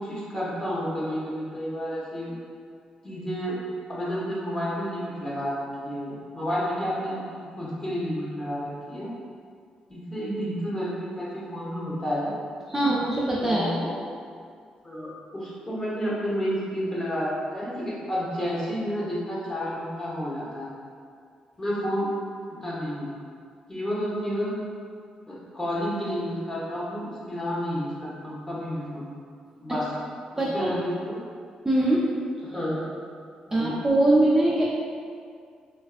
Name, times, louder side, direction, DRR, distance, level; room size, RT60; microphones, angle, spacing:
voice 1, 0.0-2.3 3.0-3.6 3.9-9.1 9.9-12.3 12.7-12.9 13.4-13.9 14.8-20.7 21.6-22.1 22.6-23.1 23.7-24.6 25.3-29.1 29.6-29.9 30.3-31.2 32.4-32.9 33.5-33.7, equal, 25° left, -7 dB, 1.0 m, -30 dB
voice 2, 12.7-13.7 30.4-30.7 31.6-32.1 33.5-34.6, right 1 dB, 15° right, -6 dB, 0.4 m, -22 dB
3.2 x 2.5 x 2.4 m, 2.2 s
cardioid pair, 75°, 2 cm